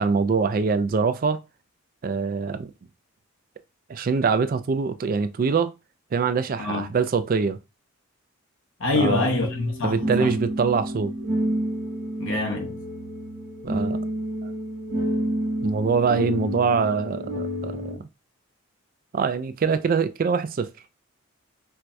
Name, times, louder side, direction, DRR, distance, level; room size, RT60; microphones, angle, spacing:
voice 1, 0.0-1.4 2.0-2.7 3.9-5.7 6.1-7.6 8.9-9.3 9.8-11.1 13.6-14.0 14.4-14.5 15.6-18.0 19.1-20.7, right 5 dB, 40° right, 0.3 m, -24 dB
voice 2, 8.8-10.3 12.2-12.8, left 3 dB, 70° left, 0.9 m, -25 dB
sound 1, 9.4-18.0, equal, 65° right, 0.9 m, -29 dB
4.5 x 2.3 x 2.5 m
head